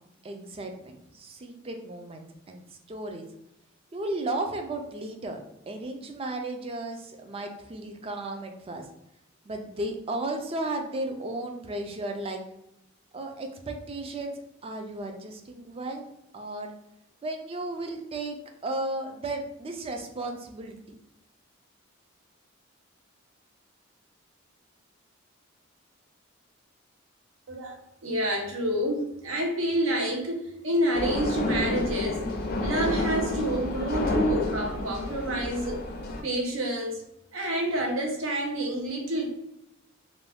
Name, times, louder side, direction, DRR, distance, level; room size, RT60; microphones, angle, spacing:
voice 1, 0.2-3.2 3.9-5.4 5.7-8.9 9.5-12.4 13.1-16.7 17.2-18.4 18.6-20.8, right 2 dB, 30° right, 4 dB, 0.4 m, -34 dB
voice 2, 28.0-32.2 32.6-35.8 36.2-37.0 37.3-39.3, right 1 dB, 80° right, 1 dB, 0.7 m, -28 dB
sound 1, 30.9-36.2, left 2 dB, 50° left, 0.4 m, -30 dB
2.6 x 2.2 x 3.3 m, 0.81 s
head